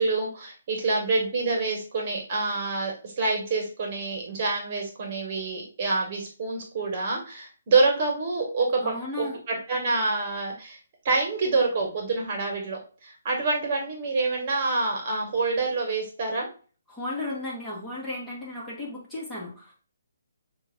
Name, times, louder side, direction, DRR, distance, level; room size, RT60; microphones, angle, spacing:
voice 1, 0.0-10.8 11.0-16.5, right 3 dB, 40° right, 1 dB, 1.6 m, -27 dB
voice 2, 8.8-9.4 16.9-19.7, left 2 dB, 5° left, -7 dB, 2.0 m, -35 dB
6.5 x 2.9 x 2.5 m, 0.38 s
hypercardioid pair, 150°, 0 cm